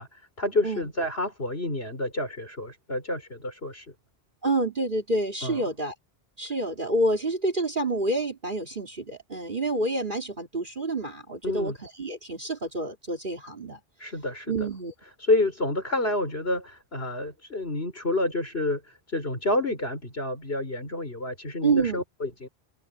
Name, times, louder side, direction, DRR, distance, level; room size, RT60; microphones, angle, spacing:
voice 1, 0.0-3.9 5.4-5.6 11.4-11.8 14.0-14.7 15.2-22.5, left 2 dB, 65° left, 5.7 m, -29 dB
voice 2, 4.4-5.9 6.4-13.8 14.5-14.9 21.6-22.0, right 2 dB, 50° right, 3.2 m, -28 dB
omnidirectional pair, 1.1 m